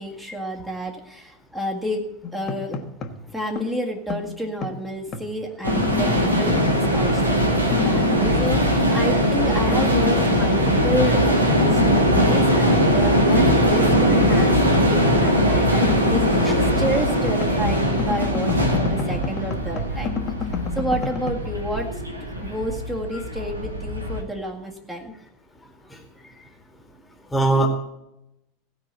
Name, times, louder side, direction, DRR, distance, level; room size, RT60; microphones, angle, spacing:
voice 1, 0.0-2.8 3.3-16.5 16.8-20.1 20.8-22.0 22.4-25.1, equal, 10° right, -1 dB, 1.9 m, -30 dB
sound 1, 2.2-3.2 3.5-5.3 5.7-7.4 7.7-9.5 9.7-11.3 11.7-13.3 13.7-17.7 18.0-21.3, left 6 dB, 30° left, 1.3 m, -30 dB
sound 2, 5.6-24.2, equal, 80° right, 1.6 m, -20 dB
voice 2, 27.3-27.7, right 2 dB, 10° left, 4 dB, 1.9 m, -21 dB
16.0 x 5.5 x 8.1 m, 0.86 s
figure-of-eight pair, 85°, 0 cm